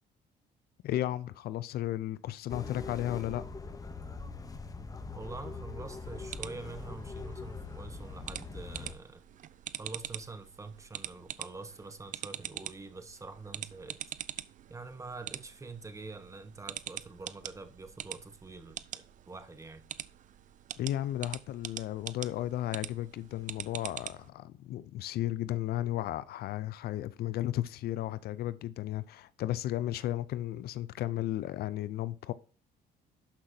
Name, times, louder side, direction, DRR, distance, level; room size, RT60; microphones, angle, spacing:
voice 1, 0.8-3.4 20.8-32.3, left 13 dB, 70° left, 0.5 m, -34 dB
sound 1, 2.5-8.9, left 4 dB, 20° left, 0.9 m, -42 dB
voice 2, 5.1-9.2 9.8-14.0 14.7-19.8, right 3 dB, 20° right, 1.2 m, -45 dB
sound 2, 5.9-24.3, right 11 dB, 50° right, 0.5 m, -44 dB
11.5 x 5.8 x 2.8 m
cardioid pair, 110°, 17 cm